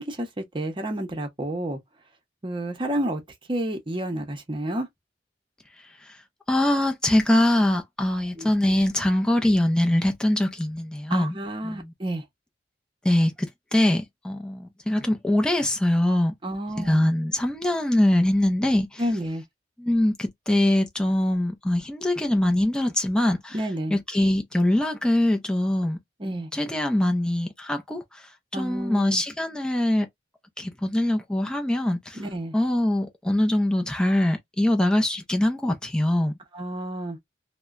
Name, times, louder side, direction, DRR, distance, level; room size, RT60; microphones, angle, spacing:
voice 1, 0.0-1.8 2.4-3.2 3.5-4.9 8.4-8.5 11.1-12.2 16.4-17.1 19.0-19.4 23.5-24.0 26.2-26.5 28.5-29.2 32.2-32.5 36.5-37.2, right 1 dB, 30° right, 0.8 m, -30 dB
voice 2, 6.5-11.4 11.6-11.9 13.0-16.3 16.8-19.0 19.8-23.6 23.9-26.0 26.2-28.0 28.5-30.1 30.6-32.2 32.5-36.3, left 1 dB, 5° left, 0.5 m, -23 dB
2.8 x 2.1 x 2.4 m
head